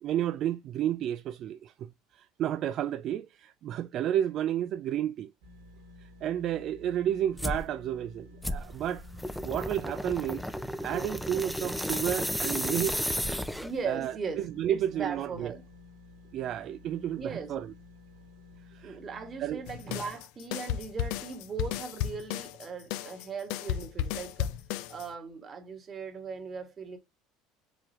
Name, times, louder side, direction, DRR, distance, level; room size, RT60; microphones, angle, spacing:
voice 1, 0.0-5.3 6.0-9.0 9.4-10.4 10.8-13.0 13.9-15.5 16.3-17.7 18.7-19.0 19.4-19.6, right 11 dB, 55° right, 0.3 m, -31 dB
sound 1, 5.4-20.1, left 2 dB, 80° right, 1.6 m, -53 dB
sound 2, 7.4-7.7 8.4-13.8, equal, ahead, 0.6 m, -33 dB
voice 2, 13.6-15.6 17.2-17.5 18.8-24.5 24.9-27.0, right 5 dB, 35° right, 1.5 m, -38 dB
sound 3, 19.7-25.1, left 11 dB, 70° left, 0.5 m, -34 dB
4.8 x 3.8 x 2.9 m
hypercardioid pair, 75°, 0 cm